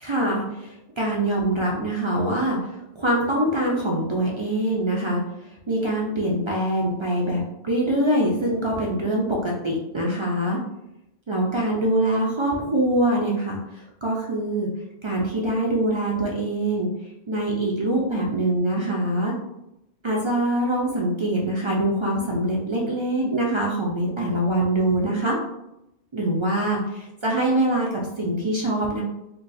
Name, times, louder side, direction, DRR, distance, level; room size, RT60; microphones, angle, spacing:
voice 1, 0.0-2.6 3.0-5.2 5.7-10.6 11.3-14.7 15.0-16.9 17.3-19.3 20.0-25.4 26.1-27.9 28.2-29.0, right 1 dB, 50° right, -2 dB, 0.3 m, -24 dB
4.4 x 2.3 x 2.5 m, 0.88 s
omnidirectional pair, 1.1 m